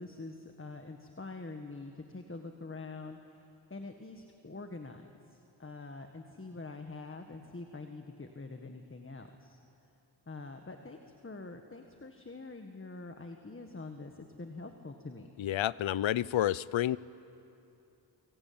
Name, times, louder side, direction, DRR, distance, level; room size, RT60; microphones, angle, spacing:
voice 1, 0.0-9.6 10.3-15.3, left 3 dB, 25° left, 5 dB, 1.6 m, -45 dB
voice 2, 15.4-17.0, left 12 dB, 85° left, 20 dB, 0.6 m, -29 dB
25.5 x 24.0 x 8.8 m, 2.9 s
cardioid pair, 65°, 45 cm